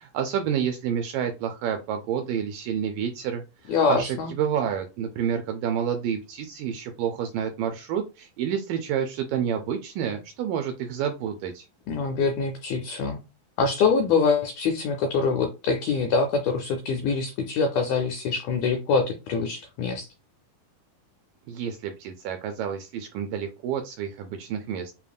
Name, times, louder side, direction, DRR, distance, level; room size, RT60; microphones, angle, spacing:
voice 1, 0.0-11.7 21.5-25.0, right 8 dB, 85° right, 5 dB, 1.9 m, -29 dB
voice 2, 3.7-4.3 11.9-13.2 13.6-20.1, left 4 dB, 85° left, 4 dB, 1.8 m, -24 dB
7.0 x 2.4 x 2.2 m, 0.28 s
omnidirectional pair, 4.2 m